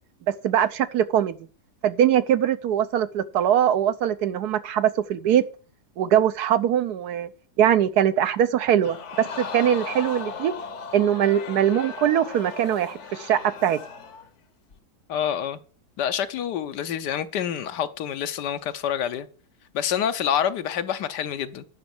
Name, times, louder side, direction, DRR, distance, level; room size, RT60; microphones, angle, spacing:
voice 1, 0.4-1.4 1.8-5.4 6.0-7.3 7.6-10.5 10.9-13.8, right 10 dB, 70° right, 1.2 m, -22 dB
Crowd, 8.8-14.3 14.7-14.8, left 5 dB, 50° left, 1.1 m, -37 dB
voice 2, 15.1-15.6 16.0-19.3 19.7-21.6, left 9 dB, 75° left, 1.4 m, -27 dB
10.5 x 6.3 x 7.1 m
omnidirectional pair, 1.8 m